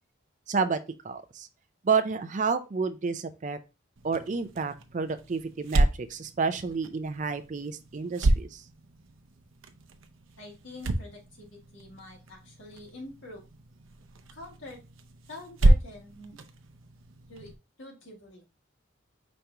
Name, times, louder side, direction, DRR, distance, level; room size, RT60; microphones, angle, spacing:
voice 1, 0.5-0.8 1.0-1.5 1.8-3.6 4.0-8.6, right 5 dB, 40° right, 9 dB, 0.4 m, -30 dB
sound 1, 4.0-17.6, right 1 dB, 90° right, 0.6 m, -30 dB
voice 2, 10.4-13.5 14.3-14.8 15.3-16.4 17.3-17.5 17.8-18.4, left 2 dB, 75° left, -1 dB, 1.8 m, -45 dB
5.2 x 3.0 x 3.3 m, 0.28 s
head